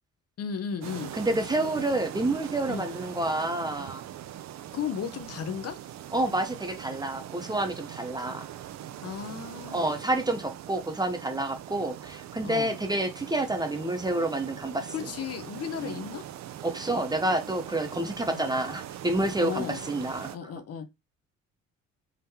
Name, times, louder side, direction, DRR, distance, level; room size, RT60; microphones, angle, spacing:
voice 1, 0.4-1.1 2.7-2.9 4.7-5.8 9.0-9.9 12.4-12.7 14.9-16.2 18.3-18.5 19.4-19.8 20.3-20.9, left 7 dB, 55° left, 0.8 m, -35 dB
sound 1, 0.8-20.4, right 12 dB, 65° right, 0.5 m, -41 dB
voice 2, 1.1-4.0 6.1-8.5 9.7-14.9 15.8-15.9 16.6-20.4, right 1 dB, 15° right, 0.7 m, -29 dB
3.7 x 3.5 x 2.8 m
cardioid pair, 90°, 30 cm